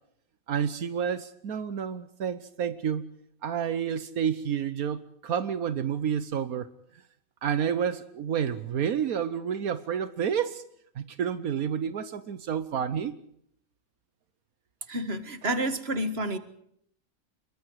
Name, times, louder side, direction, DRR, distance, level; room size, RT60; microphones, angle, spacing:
voice 1, 0.5-3.0 3.4-6.7 7.4-10.6 11.0-13.1, right 8 dB, 80° right, 1.5 m, -29 dB
voice 2, 14.9-16.4, right 1 dB, 45° right, 2.0 m, -29 dB
27.5 x 23.0 x 4.8 m
omnidirectional pair, 1.5 m